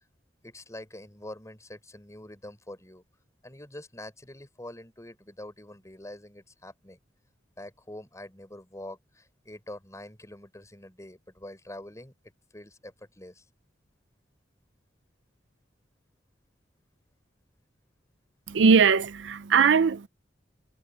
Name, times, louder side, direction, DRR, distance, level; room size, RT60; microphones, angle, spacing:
voice 1, 0.4-3.0 3.4-7.0 7.6-12.1 12.5-13.4, left 1 dB, 15° left, 5.2 m, -45 dB
voice 2, 18.5-20.1, right 5 dB, 75° right, 0.5 m, -20 dB
head